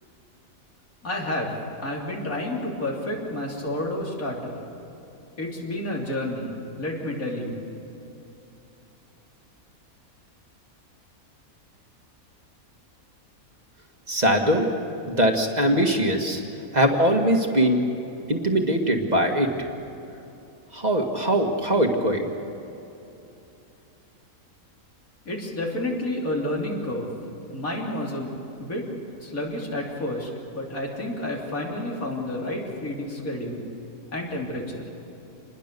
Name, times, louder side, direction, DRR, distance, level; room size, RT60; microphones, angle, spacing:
voice 1, 1.0-1.5 1.8-4.5 5.4-7.6 25.3-27.1 27.5-28.9 29.2-33.7 34.1-34.8, left 1 dB, 70° left, -2 dB, 3.8 m, -30 dB
voice 2, 14.1-14.7 15.1-16.4 16.7-17.8 18.3-19.7 20.7-22.3, right 1 dB, 30° right, 3 dB, 1.9 m, -21 dB
27.0 x 21.0 x 6.8 m, 2.9 s
omnidirectional pair, 1.5 m